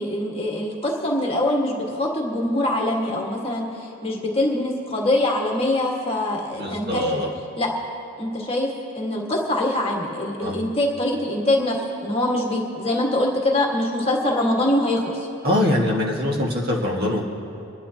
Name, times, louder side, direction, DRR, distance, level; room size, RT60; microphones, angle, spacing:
voice 1, 0.0-7.1 7.6-7.7 8.2-8.7 8.9-11.8 12.0-15.0, left 1 dB, 25° left, -2 dB, 1.7 m, -23 dB
voice 2, 6.5-7.3 10.4-10.6 15.4-17.2, left 1 dB, 45° right, -2 dB, 1.8 m, -23 dB
28.0 x 11.5 x 2.9 m, 2.9 s
head